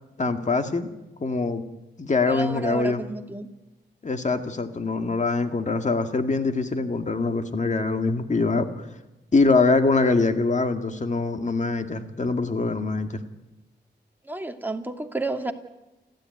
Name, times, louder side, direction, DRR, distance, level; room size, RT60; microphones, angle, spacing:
voice 1, 0.2-0.9 1.2-1.6 2.0-3.0 4.0-8.9 9.3-13.2, left 3 dB, 40° left, 7 dB, 2.2 m, -23 dB
voice 2, 2.3-3.5 14.2-15.5, right 2 dB, 10° right, 4 dB, 2.4 m, -30 dB
29.5 x 13.0 x 9.4 m, 1.0 s
cardioid pair, 90°, 19 cm